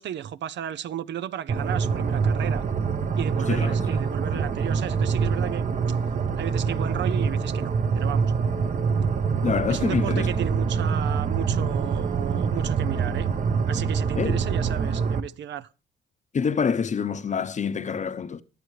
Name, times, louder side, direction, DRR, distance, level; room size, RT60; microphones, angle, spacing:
voice 1, 0.0-2.7 3.2-5.6 5.9-6.0 6.4-8.3 9.7-13.3 13.7-15.7, right 10 dB, 65° right, 0.6 m, -34 dB
sound 1, 1.5-15.2, right 5 dB, 40° right, 1.0 m, -25 dB
voice 2, 3.5-3.8 4.3-4.5 9.4-10.3 14.1-14.4 16.3-18.4, left 6 dB, 35° left, 0.8 m, -26 dB
22.5 x 7.7 x 3.3 m
cardioid pair, 90°, 20 cm